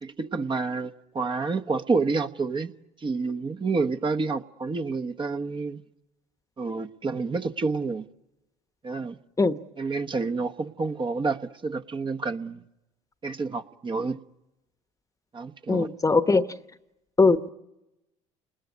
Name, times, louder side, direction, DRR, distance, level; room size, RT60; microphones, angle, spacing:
voice 1, 0.0-5.8 6.6-8.1 8.8-9.2 9.8-12.6 13.2-14.2 15.3-15.9, right 4 dB, 30° right, 1.1 m, -29 dB
voice 2, 15.7-16.5 17.2-17.5, left 3 dB, 20° left, 1.1 m, -20 dB
29.5 x 20.5 x 9.6 m
hypercardioid pair, 70°, 16 cm